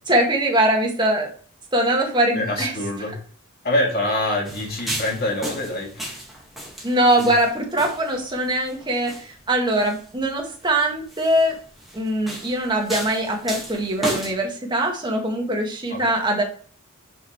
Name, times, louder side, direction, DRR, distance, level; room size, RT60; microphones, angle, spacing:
voice 1, 0.1-1.3 1.7-2.7 6.8-11.6 11.9-16.4, right 1 dB, 20° right, 1 dB, 1.7 m, -22 dB
voice 2, 2.3-3.2 3.6-6.2 7.2-7.3 15.9-16.2, left 1 dB, 45° left, 0 dB, 2.5 m, -25 dB
sound 1, 4.4-14.3, right 1 dB, ahead, 1.8 m, -35 dB
6.4 x 6.0 x 3.1 m, 0.43 s
head